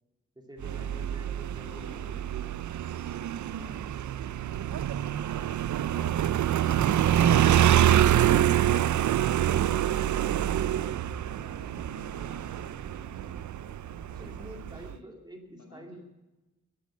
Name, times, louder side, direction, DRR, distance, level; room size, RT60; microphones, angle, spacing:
voice 1, 0.4-2.7 3.6-4.0 14.1-16.0, equal, 15° right, 2 dB, 2.4 m, -48 dB
Motorcycle, 0.6-14.9, right 11 dB, 70° right, 0.4 m, -26 dB
voice 2, 1.6-2.3 4.6-8.5 9.2-13.7 14.4-15.1 15.5-16.0, left 1 dB, 60° left, 4 dB, 4.9 m, -53 dB
15.0 x 11.0 x 7.3 m, 1.1 s
wide cardioid pair, 180°, 30 cm